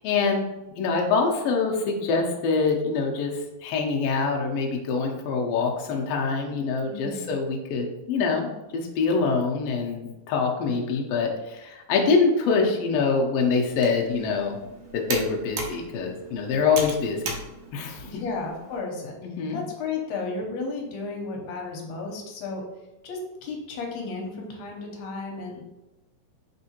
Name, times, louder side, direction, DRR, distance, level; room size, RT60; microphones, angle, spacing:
voice 1, 0.0-3.3 3.6-14.6 14.9-17.3 17.7-18.2 19.2-19.6, left 4 dB, 90° left, 1 dB, 1.4 m, -25 dB
voice 2, 6.8-7.3 18.0-19.2 19.5-22.6 23.0-25.6, left 3 dB, 70° left, 0 dB, 1.8 m, -33 dB
Computer keyboard, 13.6-18.8, right 3 dB, 75° right, 1.7 m, -38 dB
4.2 x 3.6 x 2.8 m, 1.0 s
omnidirectional pair, 3.6 m